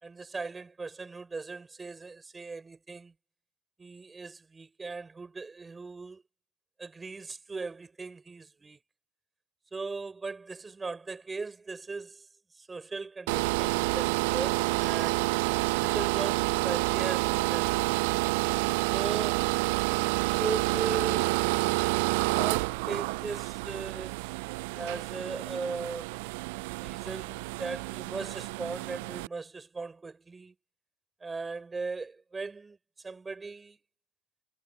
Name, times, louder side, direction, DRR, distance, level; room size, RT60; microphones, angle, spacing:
voice 1, 0.0-3.1 3.8-6.2 6.8-8.8 9.7-12.3 12.6-15.3 15.8-18.1 18.9-19.5 20.0-21.3 22.3-24.1 24.7-26.2 26.7-30.5 31.2-32.8 33.0-33.8, right 4 dB, 20° right, 6.0 m, -38 dB
sound 1, 13.3-29.3, right 27 dB, 65° right, 0.4 m, -29 dB
figure-of-eight pair, 70°, 0 cm